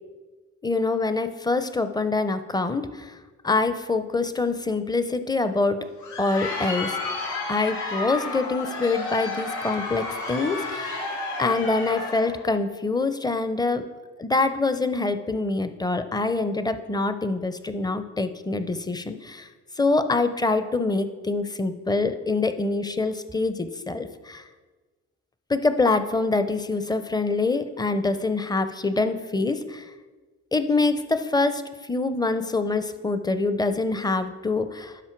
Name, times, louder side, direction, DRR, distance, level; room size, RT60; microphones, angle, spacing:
voice 1, 0.6-3.2 3.4-5.8 6.2-7.0 7.5-11.0 11.4-13.8 14.2-19.5 19.8-24.4 25.5-29.9 30.5-35.0, left 3 dB, 15° left, 10 dB, 0.6 m, -25 dB
Crowd, 5.8-12.4, left 3 dB, 70° left, 2.8 m, -31 dB
11.5 x 4.4 x 4.6 m, 1.3 s
cardioid pair, 90°, 30 cm